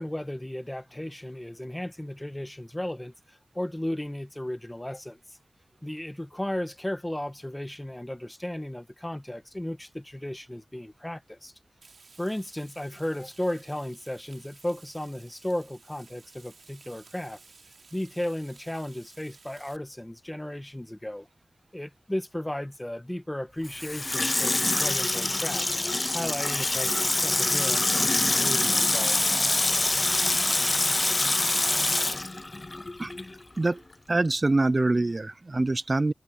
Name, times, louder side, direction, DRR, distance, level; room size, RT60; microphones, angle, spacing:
voice 1, 0.0-5.4 5.8-11.5 12.2-17.4 17.9-21.3 21.7-25.7 26.1-29.3, left 1 dB, 10° left, 1.5 m, -35 dB
Frying (food), 11.8-19.8, right 4 dB, 75° right, 6.3 m, -55 dB
Water tap faucet / Sink (filling or washing), 23.6-33.4 33.7-33.8, left 2 dB, 30° left, 0.5 m, -25 dB
voice 2, 34.1-36.1, right 2 dB, 35° right, 0.4 m, -24 dB
wide cardioid pair, 105°, 0 cm